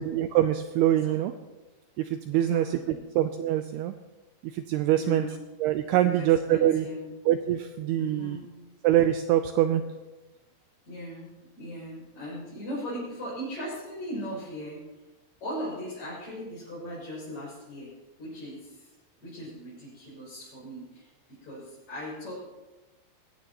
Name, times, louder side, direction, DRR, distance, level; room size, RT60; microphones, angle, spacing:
voice 1, 0.0-1.3 2.0-3.9 4.5-5.3 5.6-6.9 7.3-8.4 8.8-9.8, right 12 dB, 85° right, 8 dB, 2.3 m, -24 dB
voice 2, 1.0-1.4 2.3-3.0 4.9-5.4 5.9-7.1 7.9-8.6 10.9-14.8 15.4-17.9 18.2-18.9 19.2-22.3, equal, 40° left, -10 dB, 7.6 m, -38 dB
21.0 x 16.5 x 3.0 m, 1.1 s
omnidirectional pair, 5.3 m